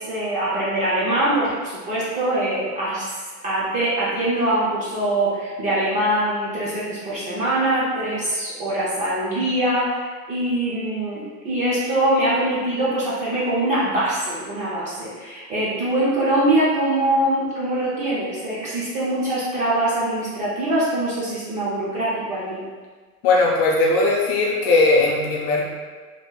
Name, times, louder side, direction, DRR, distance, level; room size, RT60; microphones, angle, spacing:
voice 1, 0.0-3.1 3.4-22.6, right 1 dB, 20° right, -8 dB, 0.4 m, -23 dB
voice 2, 23.2-25.6, left 3 dB, 40° left, -2 dB, 0.5 m, -18 dB
3.4 x 2.8 x 2.3 m, 1.4 s
supercardioid pair, 130°, 45 cm